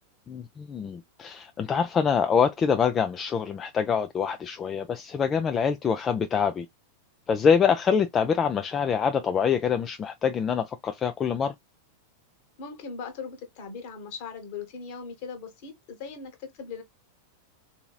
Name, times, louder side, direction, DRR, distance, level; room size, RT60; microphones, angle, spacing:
voice 1, 0.3-6.7 7.3-11.5, left 6 dB, 25° left, 0.3 m, -25 dB
voice 2, 12.6-16.8, left 5 dB, 45° left, 1.2 m, -39 dB
3.8 x 2.8 x 2.2 m
figure-of-eight pair, 90°, 0 cm